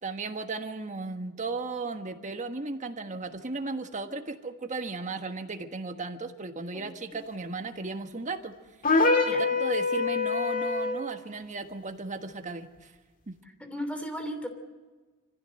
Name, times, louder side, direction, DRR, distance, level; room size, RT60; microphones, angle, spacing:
voice 1, 0.0-8.5 9.4-12.9 13.3-13.4, right 3 dB, 35° right, 7 dB, 1.4 m, -35 dB
sound 1, 8.8-11.1, left 4 dB, 40° left, 2.0 m, -25 dB
voice 2, 13.6-14.5, equal, 5° left, 7 dB, 3.0 m, -35 dB
26.0 x 15.5 x 7.8 m, 1.3 s
head